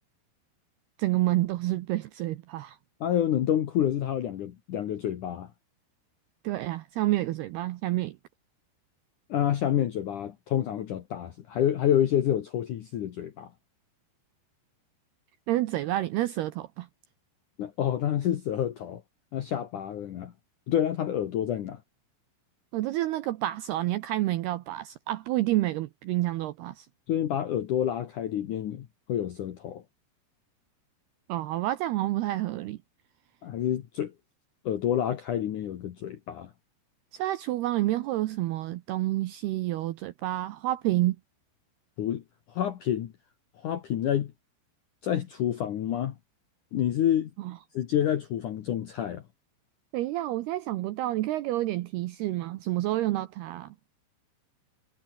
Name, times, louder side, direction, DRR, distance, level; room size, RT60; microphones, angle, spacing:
voice 1, 1.0-2.8 6.4-8.2 15.5-16.9 22.7-26.9 31.3-32.8 37.1-41.2 47.4-47.6 49.9-53.7, right 16 dB, 80° right, 2.3 m, -29 dB
voice 2, 3.0-5.5 9.3-13.5 17.6-19.0 19.3-20.3 20.7-21.8 27.1-29.8 33.4-34.1 34.7-36.5 42.0-42.2 42.5-43.1 43.6-44.3 45.0-46.1 46.7-47.3 47.7-49.2, left 10 dB, 70° left, 1.9 m, -28 dB
omnidirectional pair, 5.6 m